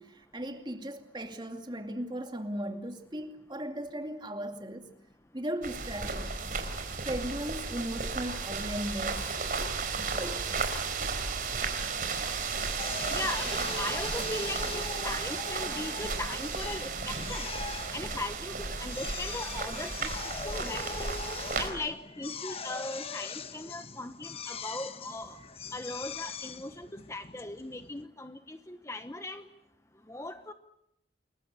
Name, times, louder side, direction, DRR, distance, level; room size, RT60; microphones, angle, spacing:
voice 1, 0.0-4.9 5.3-6.3 7.0-9.4 10.1-10.7, right 1 dB, 25° right, 2.4 m, -37 dB
sound 1, 5.6-21.7, right 4 dB, 50° right, 4.3 m, -34 dB
Drill, 12.8-28.1, left 4 dB, 35° left, 1.1 m, -41 dB
voice 2, 13.1-17.5 17.9-20.1 20.4-21.1 21.6-25.4 25.7-29.4 30.1-30.5, left 2 dB, 15° left, 0.9 m, -39 dB
29.0 x 22.0 x 8.3 m
head